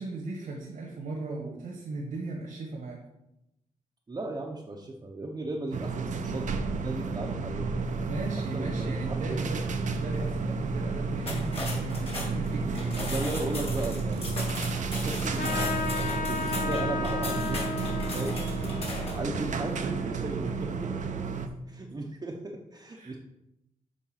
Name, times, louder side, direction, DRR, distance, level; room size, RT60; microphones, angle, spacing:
voice 1, 0.0-3.0 8.0-12.9 19.3-19.9 20.2-20.4 22.9-23.2, right 3 dB, 85° right, -2 dB, 1.7 m, -37 dB
voice 2, 4.1-7.7 8.5-9.4 12.9-14.3 15.0-17.8 18.1-18.4 18.6-19.8 20.2-20.5 20.8-21.0 21.7-23.2, right 2 dB, 30° right, -1 dB, 0.8 m, -36 dB
sound 1, 5.7-21.5, right 4 dB, 65° right, 0.7 m, -31 dB
sound 2, 11.2-19.3, left 2 dB, 45° left, 2.2 m, -38 dB
Trumpet, 15.4-20.4, left 5 dB, 85° left, 1.1 m, -34 dB
7.3 x 3.9 x 5.7 m, 0.86 s
wide cardioid pair, 105°, 14 cm